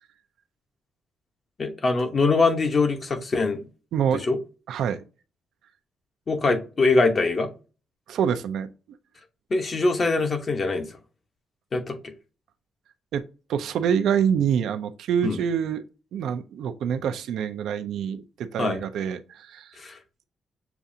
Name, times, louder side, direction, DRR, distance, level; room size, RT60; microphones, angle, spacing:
voice 1, 1.6-3.6 4.2-4.4 6.3-7.5 9.5-11.0 11.7-12.1 15.2-15.4 18.6-18.8 19.8-20.0, left 3 dB, 40° left, 1.0 m, -23 dB
voice 2, 3.9-4.3 4.7-5.1 8.1-8.7 13.1-13.2 13.5-15.8 16.1-19.8, right 8 dB, 80° right, 0.5 m, -26 dB
6.8 x 2.4 x 2.7 m
cardioid pair, 100°, 0 cm